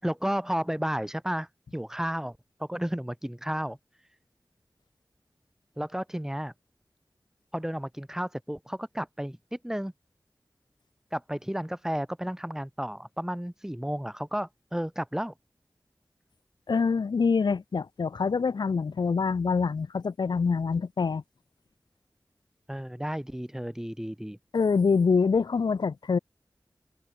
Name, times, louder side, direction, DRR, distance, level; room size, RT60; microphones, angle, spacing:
voice 1, 0.0-4.1 5.8-6.5 7.5-9.9 11.1-15.3 22.7-24.4, equal, 5° right, 4.3 m, -32 dB
voice 2, 16.7-21.2 24.5-26.2, left 5 dB, 90° left, 0.7 m, -25 dB
open air
wide cardioid pair, 65°, 7 cm